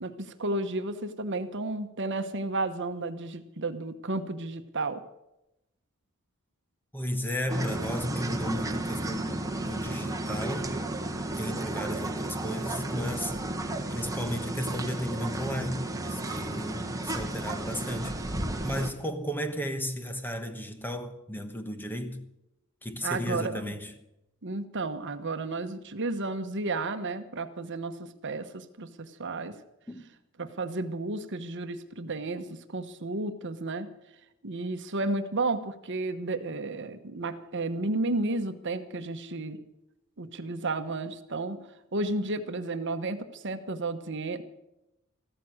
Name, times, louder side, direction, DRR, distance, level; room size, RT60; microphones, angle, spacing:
voice 1, 0.0-5.0 23.0-23.7 24.4-29.6 30.4-33.9 34.4-39.6 40.2-41.6 41.9-44.4, right 2 dB, 55° right, 1.1 m, -32 dB
voice 2, 6.9-10.7 11.4-13.4 13.9-18.3 18.6-22.2 22.8-23.9 29.9-30.0, equal, 10° left, 1.2 m, -34 dB
sound 1, 7.5-18.9, right 1 dB, 15° right, 1.5 m, -33 dB
15.0 x 13.5 x 6.4 m
head